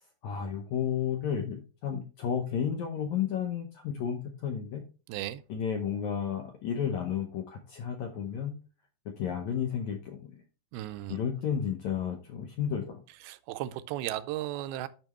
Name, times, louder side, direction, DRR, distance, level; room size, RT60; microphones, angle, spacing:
voice 1, 0.2-4.8 5.5-8.6 9.0-10.4 11.1-13.0, left 8 dB, 75° left, 1.7 m, -32 dB
voice 2, 5.1-5.4 10.7-11.2 13.2-14.9, right 14 dB, 85° right, 2.5 m, -35 dB
9.0 x 5.9 x 3.0 m
omnidirectional pair, 4.4 m